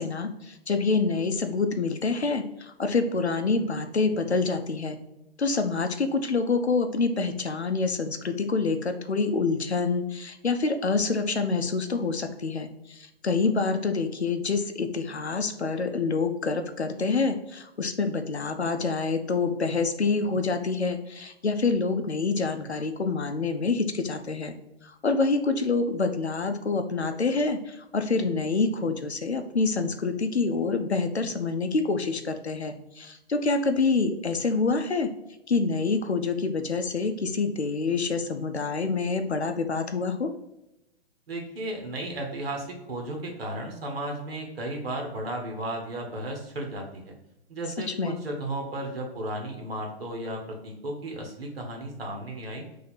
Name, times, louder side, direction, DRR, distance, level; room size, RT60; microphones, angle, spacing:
voice 1, 0.0-5.0 5.4-24.5 24.8-35.1 35.5-40.3 47.9-48.2, left 4 dB, 85° left, 7 dB, 0.6 m, -27 dB
voice 2, 41.3-47.1 47.5-52.6, right 1 dB, 65° right, 1 dB, 1.4 m, -34 dB
4.0 x 2.8 x 4.3 m, 0.92 s
figure-of-eight pair, 115°, 32 cm